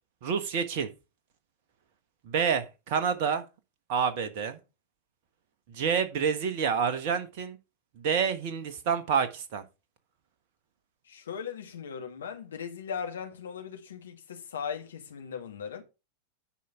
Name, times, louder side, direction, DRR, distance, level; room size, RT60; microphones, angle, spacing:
voice 1, 0.2-0.9 2.3-3.4 3.9-4.6 5.7-7.6 8.0-9.6, right 6 dB, 50° right, 1.3 m, -28 dB
voice 2, 11.1-15.8, left 7 dB, 65° left, 1.8 m, -38 dB
10.0 x 5.0 x 5.6 m
figure-of-eight pair, 90°, 0 cm